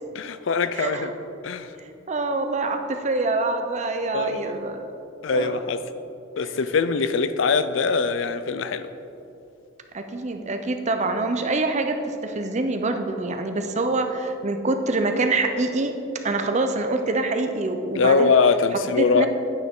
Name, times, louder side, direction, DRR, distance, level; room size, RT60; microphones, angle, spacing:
voice 1, 0.1-1.1 1.4-1.7 4.1-4.6 5.2-5.8 6.4-8.9 17.9-19.3, left 5 dB, 70° left, 12 dB, 0.4 m, -22 dB
voice 2, 0.7-1.1 1.8-4.9 5.3-5.6 6.4-6.5 7.1-7.3 9.9-15.9 16.2-18.3 19.0-19.3, right 2 dB, 35° right, 6 dB, 0.6 m, -25 dB
9.4 x 8.9 x 3.7 m, 2.8 s
head